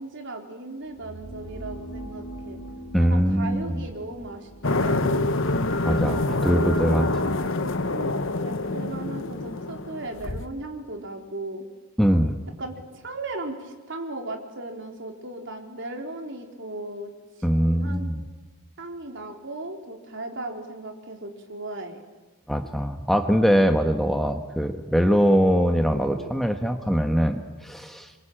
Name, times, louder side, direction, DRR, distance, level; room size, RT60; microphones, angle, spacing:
voice 1, 0.0-2.6 3.0-5.3 6.1-11.6 12.6-17.1 17.5-18.1 18.8-22.0, right 2 dB, 55° right, 3 dB, 4.1 m, -36 dB
sound 1, 0.8-6.8, right 1 dB, 85° left, 4.3 m, -42 dB
voice 2, 2.9-3.8 5.8-6.2 6.4-7.3 12.0-12.4 17.4-18.2 22.5-28.1, equal, ahead, 5 dB, 1.3 m, -22 dB
sound 2, 4.6-10.4, left 2 dB, 60° left, 1.2 m, -26 dB
27.5 x 24.0 x 8.9 m, 1.3 s
head